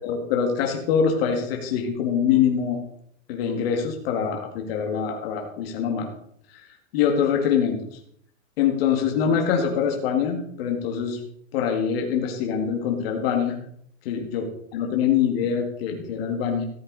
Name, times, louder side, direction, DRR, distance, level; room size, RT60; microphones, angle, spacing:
voice 1, 0.0-2.8 3.3-6.1 6.5-6.6 6.9-7.8 8.6-11.2 11.5-13.6 14.1-16.7, left 7 dB, 45° left, 2 dB, 2.2 m, -24 dB
14.5 x 8.0 x 4.1 m, 0.67 s
supercardioid pair, 165°, 41 cm